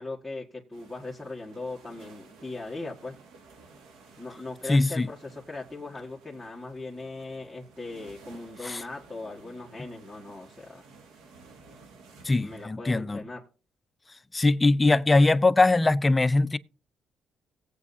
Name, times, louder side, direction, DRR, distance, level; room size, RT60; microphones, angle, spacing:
voice 1, 0.0-3.2 4.2-10.9 12.4-13.4, left 2 dB, ahead, 1.9 m, -39 dB
sound 1, 0.7-12.7, right 4 dB, 90° right, 2.0 m, -54 dB
voice 2, 4.7-5.1 8.6-8.8 12.2-13.2 14.3-16.6, left 2 dB, 20° left, 0.5 m, -21 dB
18.5 x 8.3 x 2.7 m
cardioid pair, 90°, 0 cm